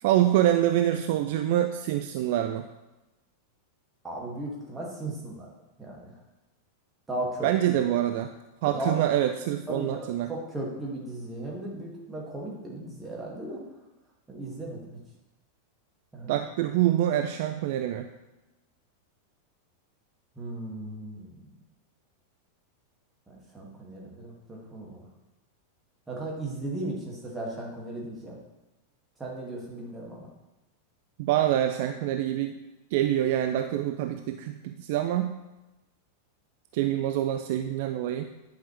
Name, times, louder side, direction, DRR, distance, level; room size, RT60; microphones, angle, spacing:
voice 1, 0.0-2.7 7.4-8.3 8.6-10.3 16.3-18.1 31.2-32.6 32.9-35.3 36.7-38.2, right 12 dB, 50° right, 7 dB, 0.4 m, -25 dB
voice 2, 4.0-5.5 5.8-6.1 7.1-7.8 8.6-9.0 9.7-13.6 14.3-15.0 16.1-16.4 20.4-21.5 23.3-25.0 26.1-28.4 29.2-30.3, right 1 dB, 10° right, -3 dB, 2.2 m, -36 dB
10.0 x 5.0 x 3.3 m, 1.0 s
figure-of-eight pair, 90°, 0 cm